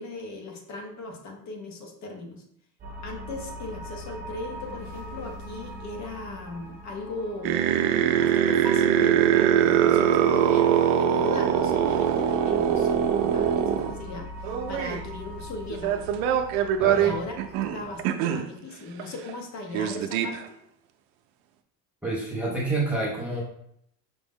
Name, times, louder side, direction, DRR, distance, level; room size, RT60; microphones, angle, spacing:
voice 1, 0.0-2.4 3.0-7.8 8.2-16.2 16.9-17.4 17.7-20.6, left 2 dB, 40° left, 3 dB, 0.7 m, -38 dB
sound 1, 2.8-18.1, equal, 20° right, 0.9 m, -42 dB
sound 2, 7.4-13.9 14.4-15.0 15.7-18.4 19.0-19.1 19.3-19.4 19.7-20.4, right 9 dB, 90° right, 0.5 m, -22 dB
voice 2, 16.8-17.1 22.0-23.4, right 2 dB, 5° right, -4 dB, 0.4 m, -28 dB
5.0 x 2.0 x 3.5 m, 0.72 s
cardioid pair, 145°, 41 cm